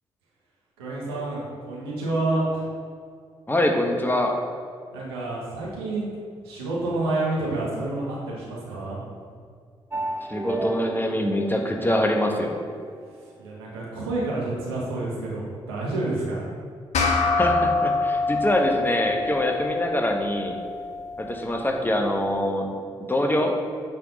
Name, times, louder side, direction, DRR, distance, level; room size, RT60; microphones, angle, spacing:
voice 1, 0.8-2.6 4.9-6.1 6.4-9.0 13.4-16.4, right 2 dB, 90° right, -5 dB, 1.1 m, -28 dB
voice 2, 3.5-4.3 10.3-12.5 17.4-20.6 21.2-22.7 23.1-23.6, left 1 dB, 15° left, 2 dB, 1.1 m, -24 dB
sound 1, 9.9-12.9, right 2 dB, 20° right, 0.6 m, -33 dB
sound 2, 16.9-21.7, left 3 dB, 65° left, 0.8 m, -26 dB
8.1 x 3.5 x 3.9 m, 2.2 s
hypercardioid pair, 40°, 13 cm